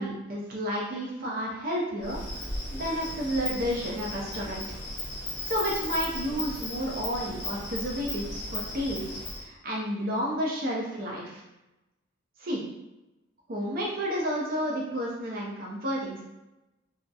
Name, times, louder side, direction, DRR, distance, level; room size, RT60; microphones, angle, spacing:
voice 1, 0.0-2.2 2.7-4.7 5.5-9.1 9.4-11.4 12.4-12.6 13.5-16.2, equal, 45° right, -3 dB, 0.4 m, -31 dB
Insect, 2.0-9.4, left 1 dB, 25° left, 1.3 m, -36 dB
2.7 x 2.0 x 2.2 m, 1.0 s
head